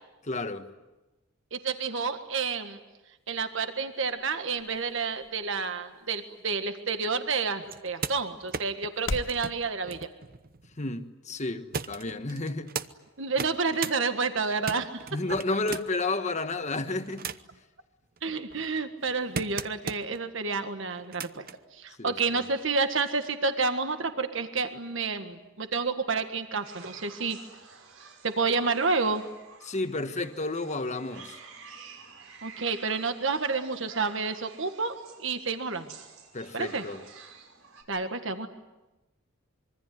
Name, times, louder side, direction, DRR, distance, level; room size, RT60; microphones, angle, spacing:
voice 1, 0.2-0.7 10.8-12.7 15.1-17.3 22.0-22.4 29.6-31.4 36.3-37.0, left 2 dB, 35° left, 1.4 m, -31 dB
voice 2, 1.5-2.8 3.3-10.1 13.2-15.0 18.2-21.4 21.7-27.4 28.2-29.2 32.4-35.9 36.5-36.8 37.9-38.5, right 4 dB, 65° right, 1.7 m, -29 dB
sound 1, 3.2-9.4, left 3 dB, 70° left, 1.1 m, -43 dB
sound 2, 7.6-11.0 11.7-12.9 13.3-14.0 14.4-16.0 16.7-17.6 18.2-20.2 20.9-21.6 22.6-22.7, right 5 dB, 45° right, 0.9 m, -38 dB
sound 3, 26.6-37.8, right 5 dB, 80° right, 5.7 m, -50 dB
25.5 x 23.5 x 9.5 m
head